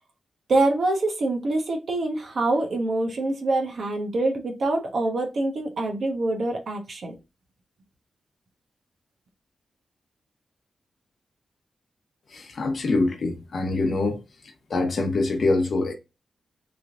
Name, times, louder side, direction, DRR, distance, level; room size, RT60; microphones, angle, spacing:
voice 1, 0.5-7.1, right 2 dB, 60° right, 1.0 m, -25 dB
voice 2, 12.3-14.2 14.7-15.9, left 2 dB, 55° left, 0.9 m, -24 dB
3.4 x 3.0 x 2.5 m
wide cardioid pair, 120°, 0 cm